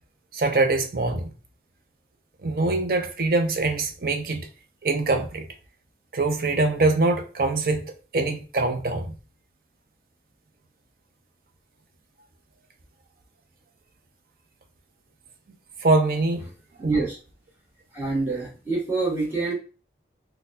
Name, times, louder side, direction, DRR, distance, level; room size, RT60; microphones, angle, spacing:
voice 1, 0.3-1.3 2.4-4.5 4.8-5.5 6.1-9.2 15.8-16.4 16.8-17.0, right 3 dB, 55° right, 0.6 m, -23 dB
voice 2, 16.8-17.2 17.9-19.5, right 3 dB, 10° right, 1.4 m, -26 dB
4.1 x 2.3 x 2.5 m
head